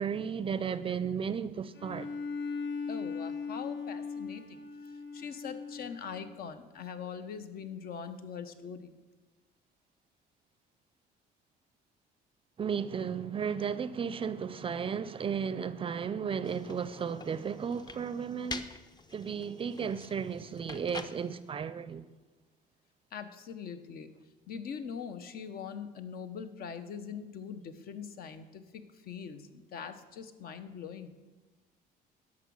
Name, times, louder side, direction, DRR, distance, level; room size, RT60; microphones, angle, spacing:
voice 1, 0.0-2.1 12.6-18.7 19.1-22.0, right 7 dB, 35° right, 0.5 m, -34 dB
Bowed string instrument, 1.7-6.5, left 5 dB, 85° left, 1.5 m, -39 dB
voice 2, 2.9-8.9 23.1-24.1 24.5-31.1, left 7 dB, 65° left, 0.9 m, -42 dB
sound 1, 16.4-21.5, left 3 dB, 25° left, 0.7 m, -46 dB
11.0 x 6.1 x 6.2 m
cardioid pair, 110°, 17 cm